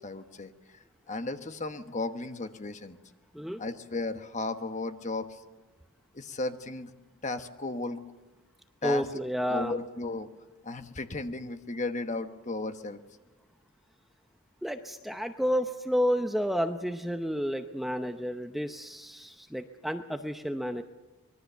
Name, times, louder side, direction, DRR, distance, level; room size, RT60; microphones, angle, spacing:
voice 1, 0.0-3.0 3.6-5.4 6.1-6.9 7.2-8.0 8.8-9.1 9.5-10.3 10.6-13.0, left 3 dB, 35° left, 8 dB, 1.1 m, -35 dB
voice 2, 8.8-9.8 14.6-20.8, equal, ahead, 6 dB, 0.7 m, -30 dB
25.0 x 21.0 x 6.9 m, 1.2 s
head